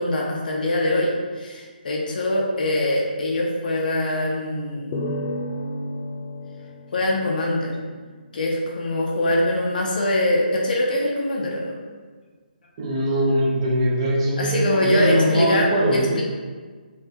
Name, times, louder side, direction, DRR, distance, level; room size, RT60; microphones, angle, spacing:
voice 1, 0.0-5.0 6.9-7.8 8.3-11.8 14.4-16.2, left 1 dB, 55° left, -2 dB, 0.7 m, -23 dB
sound 1, 4.9-8.3, left 1 dB, 20° left, 0.3 m, -32 dB
voice 2, 12.8-16.2, right 1 dB, 30° right, -3 dB, 0.7 m, -21 dB
4.7 x 2.7 x 2.6 m, 1.5 s
hypercardioid pair, 155°, 5 cm